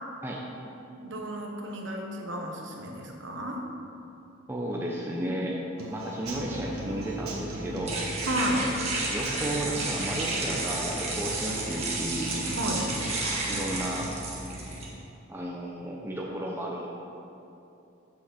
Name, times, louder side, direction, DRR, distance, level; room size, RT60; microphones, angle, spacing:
voice 1, 1.0-3.6 8.2-8.7 12.6-12.9, equal, 55° right, 0 dB, 1.2 m, -32 dB
voice 2, 4.5-5.6 5.9-8.0 9.1-12.3 13.5-14.1 15.3-16.9, right 1 dB, 10° right, -3 dB, 0.7 m, -33 dB
Human voice / Acoustic guitar / Drum, 5.8-13.8, right 1 dB, 80° right, 1.5 m, -40 dB
sound 1, 6.2-14.8, right 2 dB, 30° right, 1.5 m, -33 dB
7.0 x 6.4 x 6.8 m, 2.8 s
head